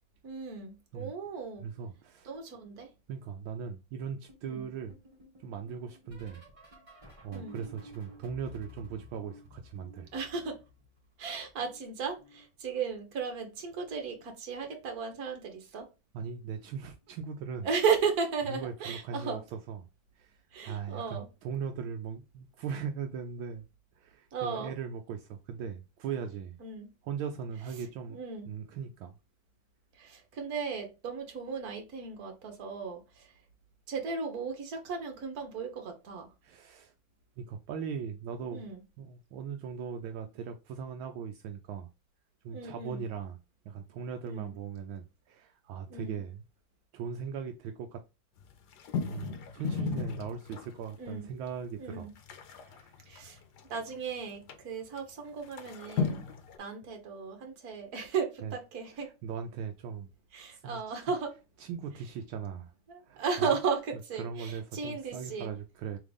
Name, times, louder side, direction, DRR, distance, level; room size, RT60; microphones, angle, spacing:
voice 1, 0.2-1.7 2.2-2.9 4.5-4.7 7.3-7.6 10.0-10.6 11.2-15.9 17.6-19.4 20.5-21.3 24.3-24.7 26.6-26.9 28.1-28.5 29.9-33.3 33.9-36.3 38.5-38.8 42.5-43.0 44.2-44.5 45.9-46.2 51.0-51.3 51.8-52.1 53.1-53.4 53.7-56.2 56.6-59.1 60.3-61.3 62.9-65.5, right 5 dB, 50° right, 1.5 m, -35 dB
voice 2, 1.6-2.3 3.1-4.9 5.4-6.4 7.2-10.1 16.1-17.7 18.5-19.8 20.2-20.4 20.6-23.6 24.0-26.6 27.0-28.2 28.5-29.1 36.4-36.9 37.4-38.7 39.0-41.9 42.4-43.4 43.7-46.4 46.9-48.0 49.1-52.1 52.5-52.9 58.4-58.5 59.0-60.1 60.5-60.8 61.6-62.7 63.1-63.5 64.2-66.0, right 6 dB, 80° right, 1.3 m, -39 dB
sound 1, 4.3-11.1 11.3-12.9 13.9-14.3 14.5-14.9 16.4-16.7 17.0-17.3 18.8-18.9, left 3 dB, 15° right, 1.7 m, -54 dB
sound 2, 48.4-50.9 51.5-51.6 51.8-53.9 54.5-54.6 55.0-55.1 55.4-56.6, left 5 dB, 65° left, 1.1 m, -35 dB
3.7 x 3.6 x 3.4 m
omnidirectional pair, 2.3 m